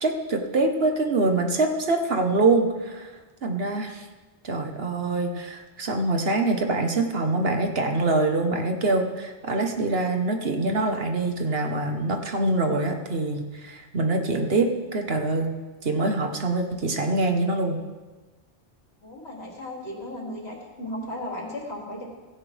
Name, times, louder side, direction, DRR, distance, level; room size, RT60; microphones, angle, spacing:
voice 1, 0.0-3.1 3.4-4.0 4.4-17.8, right 2 dB, 60° right, 4 dB, 1.5 m, -24 dB
voice 2, 19.0-22.0, left 1 dB, 75° left, -2 dB, 3.2 m, -35 dB
16.5 x 16.0 x 3.5 m, 1.3 s
omnidirectional pair, 1.1 m